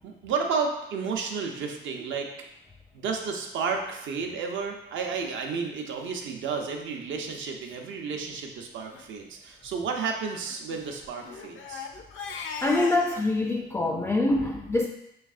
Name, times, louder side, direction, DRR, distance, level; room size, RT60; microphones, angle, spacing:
voice 1, 0.0-2.3 2.9-11.9, right 5 dB, 75° right, 3 dB, 0.7 m, -32 dB
Crying sobbing, 6.4-6.7 7.3-7.4 7.7-7.8 8.1-8.4 8.8-9.1 10.2-13.3, left 5 dB, 75° left, 0.5 m, -40 dB
voice 2, 12.6-14.9, left 2 dB, 10° left, 1 dB, 0.3 m, -25 dB
5.4 x 3.2 x 2.4 m, 0.83 s
cardioid pair, 90°, 20 cm